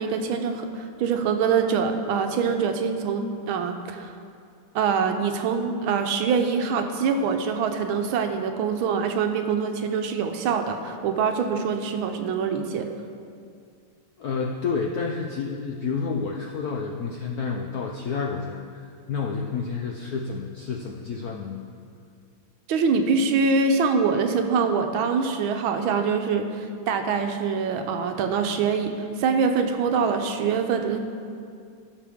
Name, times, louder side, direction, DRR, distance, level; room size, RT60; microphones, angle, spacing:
voice 1, 0.0-4.1 4.7-12.9 22.7-31.0, right 5 dB, 75° right, 6 dB, 1.5 m, -24 dB
voice 2, 14.2-21.7, left 5 dB, 75° left, 0 dB, 0.8 m, -30 dB
16.5 x 5.8 x 3.5 m, 2.3 s
omnidirectional pair, 2.3 m